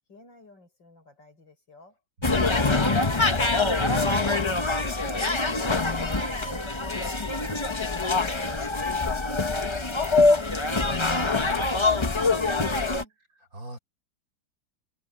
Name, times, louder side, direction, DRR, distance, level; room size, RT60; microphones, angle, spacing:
voice 1, 0.1-2.0 6.3-7.8 8.1-9.9, left 2 dB, 65° left, 6.8 m, -52 dB
sound 1, 2.2-13.0, left 3 dB, 25° left, 0.6 m, -24 dB
voice 2, 2.2-3.0 11.2-12.1 13.5-13.8, right 1 dB, 45° right, 5.6 m, -45 dB
omnidirectional pair, 2.2 m